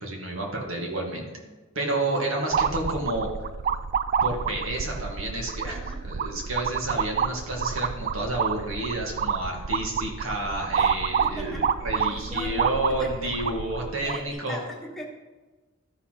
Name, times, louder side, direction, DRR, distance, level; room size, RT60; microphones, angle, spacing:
voice 1, 0.0-1.3 1.8-3.3 4.2-14.6, right 1 dB, 70° right, 0 dB, 2.2 m, -30 dB
voice 2, 1.0-1.6 5.6-6.1 10.7-11.7 11.9-13.3 14.0-15.1, equal, ahead, -2 dB, 1.4 m, -41 dB
sound 1, 2.5-14.3, right 7 dB, 45° right, 0.3 m, -28 dB
13.0 x 5.8 x 5.9 m, 1.2 s
head